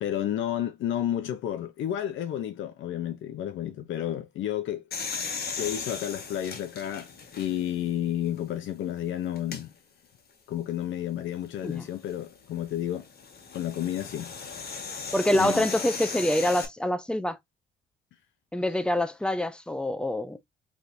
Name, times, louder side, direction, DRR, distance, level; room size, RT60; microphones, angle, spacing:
voice 1, 0.0-5.2 5.6-9.7 10.5-13.1 13.5-14.8 15.3-15.7, left 11 dB, 75° left, 0.7 m, -31 dB
sound 1, 4.9-7.8 8.4-8.5 9.4-9.6 11.8-16.7, left 5 dB, 55° left, 1.5 m, -37 dB
voice 2, 15.1-17.4 18.5-20.4, left 1 dB, 5° left, 0.7 m, -26 dB
4.3 x 3.4 x 2.6 m
cardioid pair, 90°, 20 cm